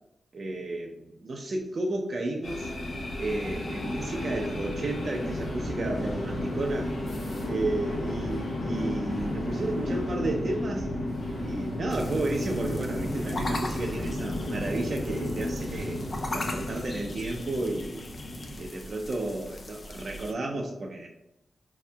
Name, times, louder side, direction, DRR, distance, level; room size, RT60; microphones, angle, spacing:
voice 1, 0.3-2.7 3.2-6.9 7.4-10.9 11.4-16.0 16.3-18.0 18.6-21.1, right 2 dB, 55° right, -1 dB, 0.5 m, -32 dB
sound 1, 2.4-18.7, left 1 dB, 70° left, 0.9 m, -33 dB
sound 2, 11.9-20.3, left 1 dB, 50° left, 0.4 m, -40 dB
4.7 x 2.7 x 2.2 m, 0.84 s
cardioid pair, 60°, 0 cm